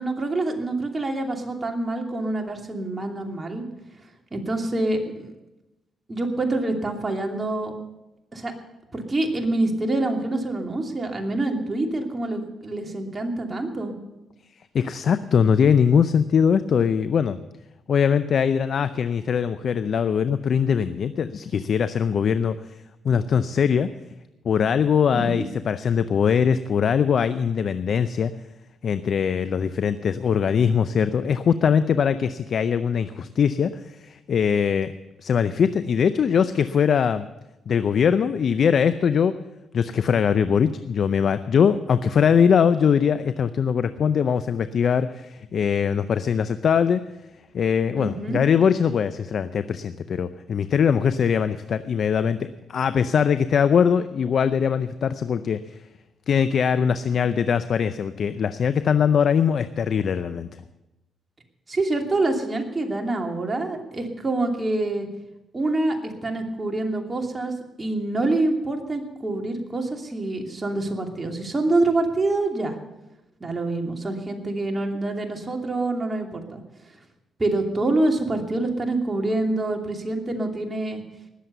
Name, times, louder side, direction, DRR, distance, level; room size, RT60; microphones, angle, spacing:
voice 1, 0.0-3.6 4.3-5.3 6.1-7.7 8.3-8.5 8.9-13.9 25.1-25.5 48.0-48.4 61.7-65.1 65.5-67.5 67.8-72.8 73.4-76.6 77.4-81.0, right 2 dB, 30° right, 2 dB, 2.8 m, -26 dB
voice 2, 14.7-17.4 17.9-22.6 23.0-23.9 24.4-28.3 28.8-34.9 35.2-37.3 37.7-39.3 39.7-47.0 47.5-55.8 56.3-60.6, left 7 dB, 60° left, 12 dB, 0.5 m, -21 dB
19.5 x 7.6 x 6.8 m, 0.98 s
supercardioid pair, 65°, 0 cm